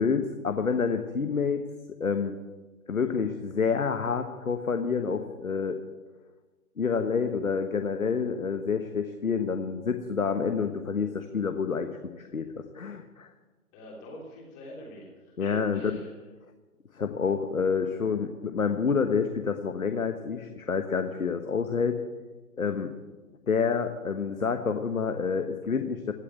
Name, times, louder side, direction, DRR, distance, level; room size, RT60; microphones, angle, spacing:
voice 1, 0.0-1.6 2.0-2.4 2.9-5.8 6.8-13.3 15.4-16.0 16.9-22.0 22.6-22.9 23.5-26.1, left 5 dB, 65° left, 7 dB, 1.4 m, -28 dB
voice 2, 13.7-16.1, left 1 dB, 15° left, -3 dB, 3.1 m, -45 dB
16.5 x 8.3 x 9.3 m, 1.2 s
figure-of-eight pair, 145°, 44 cm